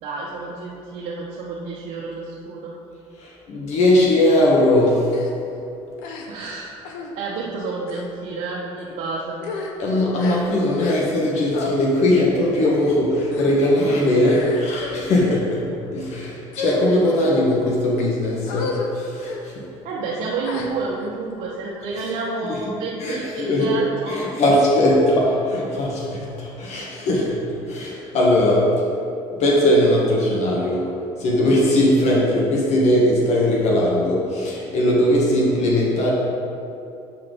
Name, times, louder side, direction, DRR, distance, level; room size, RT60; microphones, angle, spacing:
voice 1, 0.0-2.8 6.3-6.8 7.2-9.4 19.8-24.3, right 3 dB, 70° right, -4 dB, 0.8 m, -29 dB
voice 2, 3.2-5.2 9.8-19.7 22.4-22.6 23.0-23.8 24.1-28.9 29.4-30.9 31.2-36.1, left 1 dB, 60° left, -3 dB, 1.2 m, -19 dB
sound 1, 5.1-5.3 6.0-6.5 6.8-7.1 7.8-8.1 8.8-9.0 9.3-11.3 11.5-11.8 12.6-12.9 13.3-13.7 14.2-15.1 15.7-16.0 16.5-17.2 17.8-18.0 18.5-18.9 19.2-19.4 20.4-21.1, left 4 dB, 85° left, 0.7 m, -32 dB
6.7 x 4.0 x 5.1 m, 2.7 s
cardioid pair, 100°, 13 cm